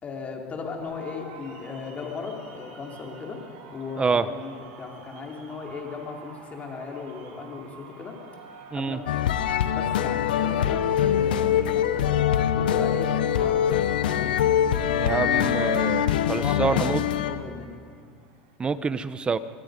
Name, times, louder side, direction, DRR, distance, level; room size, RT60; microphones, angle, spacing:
voice 1, 0.0-3.4 3.7-8.2 8.7-9.4 9.7-12.1 12.5-14.3 14.6-15.3 15.7-16.1 16.3-17.8, left 5 dB, 30° left, 1 dB, 3.8 m, -37 dB
sound 1, 0.8-18.6, right 3 dB, 70° right, 6.3 m, -50 dB
voice 2, 4.0-4.3 8.7-9.0 14.9-17.0 18.6-19.4, right 5 dB, 20° right, 14 dB, 0.9 m, -26 dB
sound 2, 9.1-17.4, left 9 dB, 90° left, 1.0 m, -23 dB
26.0 x 21.5 x 5.3 m, 2.2 s
supercardioid pair, 110°, 5 cm